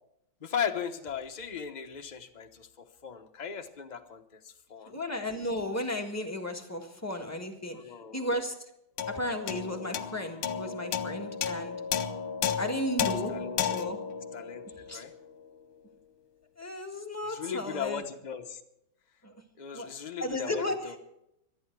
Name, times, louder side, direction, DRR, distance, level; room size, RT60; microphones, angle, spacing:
voice 1, 0.4-5.0 7.7-8.3 13.0-13.8 14.3-14.6 14.9-15.1 17.2-18.6 19.6-21.0, left 7 dB, 30° left, 4 dB, 0.9 m, -38 dB
voice 2, 4.9-7.8 8.1-8.5 9.1-11.8 12.6-13.4 13.7-14.0 14.9-15.0 16.6-18.0 19.2-19.3 19.7-19.9 20.2-20.8, left 1 dB, 10° left, 1 dB, 1.6 m, -34 dB
sound 1, 9.0-15.6, left 7 dB, 80° left, 1.6 m, -33 dB
25.5 x 9.3 x 4.7 m, 0.82 s
omnidirectional pair, 2.2 m